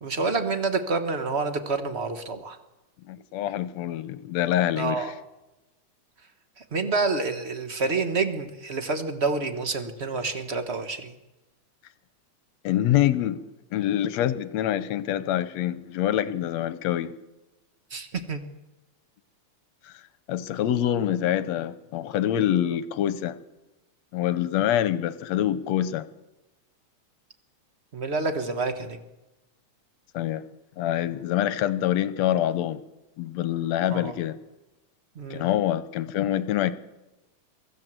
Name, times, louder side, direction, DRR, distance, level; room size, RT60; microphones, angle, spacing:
voice 1, 0.0-2.6 4.8-5.1 6.7-11.1 17.9-18.4 27.9-29.0 33.9-34.1 35.1-35.5, right 4 dB, 35° right, 8 dB, 1.0 m, -28 dB
voice 2, 3.1-5.1 12.6-13.4 13.7-17.1 20.3-23.4 24.1-26.1 30.1-30.4 30.8-32.8 33.2-34.4 35.3-36.7, left 11 dB, 70° left, 14 dB, 2.0 m, -25 dB
23.5 x 14.5 x 7.6 m, 1.0 s
omnidirectional pair, 3.3 m